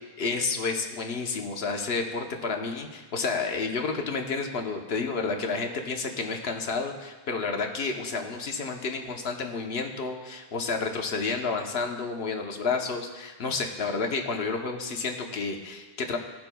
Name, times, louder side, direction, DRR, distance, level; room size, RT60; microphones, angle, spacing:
voice 1, 0.2-16.2, left 4 dB, 80° left, 3 dB, 1.1 m, -30 dB
17.5 x 5.9 x 2.2 m, 1.3 s
omnidirectional pair, 1.0 m